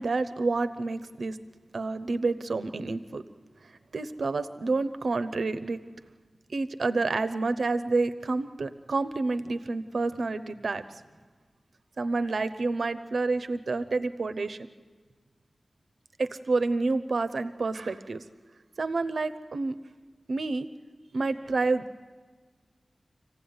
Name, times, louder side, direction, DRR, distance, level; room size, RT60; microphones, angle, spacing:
voice 1, 0.0-1.4 1.7-3.2 3.9-5.8 6.5-10.8 12.0-14.6 16.2-18.2 18.8-19.7 20.3-20.7 21.1-21.8, right 3 dB, 75° right, 11 dB, 0.8 m, -29 dB
27.0 x 16.0 x 9.5 m, 1.4 s
wide cardioid pair, 95°, 0 cm